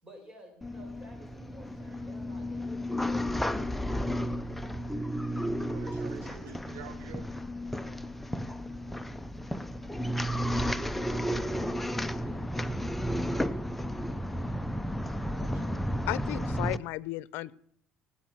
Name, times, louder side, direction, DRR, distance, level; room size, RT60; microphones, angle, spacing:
voice 1, 0.0-5.1 7.6-8.1 9.4-10.0 10.8-12.4, equal, 20° right, 6.8 m, -55 dB
sound 1, 0.6-16.8, equal, 5° left, 0.6 m, -33 dB
voice 2, 5.6-7.3 15.0-16.0, right 7 dB, 80° right, 2.6 m, -48 dB
voice 3, 16.1-17.5, left 17 dB, 75° left, 0.6 m, -34 dB
19.5 x 8.7 x 6.2 m
cardioid pair, 110°, 4 cm